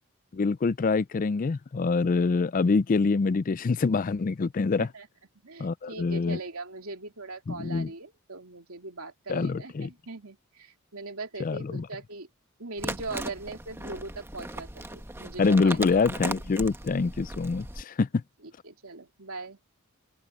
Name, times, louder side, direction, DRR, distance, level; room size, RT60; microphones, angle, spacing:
voice 1, 0.3-4.9 5.6-6.4 7.5-7.9 9.3-9.9 11.4-11.9 15.4-18.2, left 4 dB, 40° left, 0.4 m, -25 dB
voice 2, 5.4-12.3 12.6-16.0 18.6-19.6, right 3 dB, 75° right, 3.1 m, -40 dB
sound 1, 12.8-17.8, right 2 dB, 10° right, 1.1 m, -37 dB
open air
head